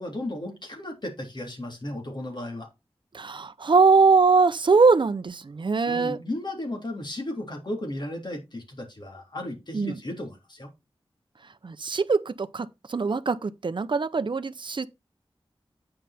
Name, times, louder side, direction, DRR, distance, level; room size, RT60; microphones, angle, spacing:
voice 1, 0.0-2.7 5.9-10.7, left 1 dB, 50° left, 3.3 m, -35 dB
voice 2, 3.1-6.2 9.7-9.9 11.6-14.9, right 4 dB, 55° right, 0.7 m, -22 dB
8.9 x 5.6 x 4.2 m
wide cardioid pair, 75°, 10 cm